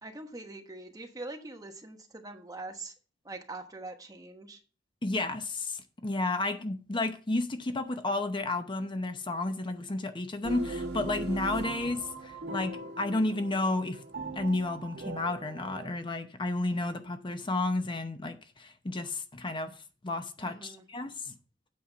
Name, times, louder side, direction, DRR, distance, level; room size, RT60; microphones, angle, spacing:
voice 1, 0.0-2.9 3.2-4.6 20.4-20.8, right 2 dB, 20° right, 1.2 m, -43 dB
voice 2, 5.0-14.0 14.4-19.7 20.0-21.3, left 2 dB, 25° left, 0.7 m, -32 dB
sound 1, 10.4-15.9, right 2 dB, 60° right, 1.7 m, -39 dB
8.6 x 5.5 x 5.4 m
head